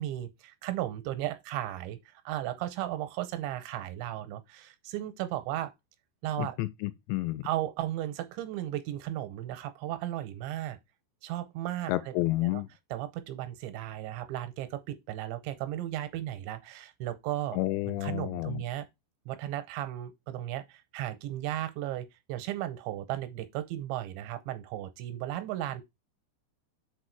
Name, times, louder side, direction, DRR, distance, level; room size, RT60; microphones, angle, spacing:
voice 1, 0.0-5.7 6.2-6.6 7.4-10.8 11.2-12.1 12.4-12.6 12.9-17.6 17.9-18.9 19.3-25.8, right 13 dB, 85° right, 3.0 m, -35 dB
voice 2, 6.4-7.4 11.9-12.7 17.5-18.6, left 18 dB, 85° left, 2.7 m, -30 dB
6.7 x 4.3 x 4.6 m
omnidirectional pair, 5.4 m